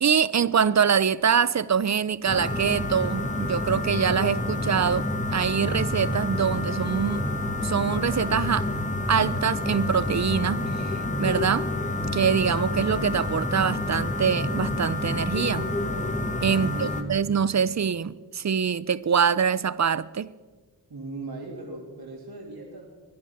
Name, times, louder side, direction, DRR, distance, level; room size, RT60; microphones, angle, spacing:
voice 1, 0.0-7.3 7.6-8.7 9.1-10.9 11.2-11.7 12.1-15.7 16.4-20.3, right 7 dB, 40° right, 0.6 m, -24 dB
sound 1, 2.3-17.0, left 2 dB, 15° left, 1.6 m, -28 dB
voice 2, 16.5-17.5 20.9-22.9, right 2 dB, 65° right, 3.0 m, -37 dB
21.5 x 11.0 x 5.9 m
wide cardioid pair, 75°, 42 cm